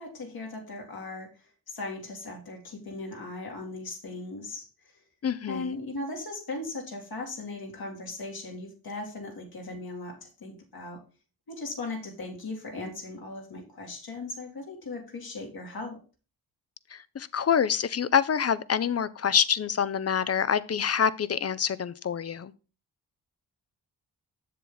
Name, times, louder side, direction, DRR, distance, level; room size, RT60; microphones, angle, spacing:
voice 1, 0.0-5.0 5.5-11.0 11.5-16.0, left 2 dB, 70° left, 2.6 m, -38 dB
voice 2, 5.2-5.7 16.9-22.5, left 7 dB, 40° left, 0.6 m, -26 dB
7.5 x 6.9 x 4.0 m
cardioid pair, 50°, 37 cm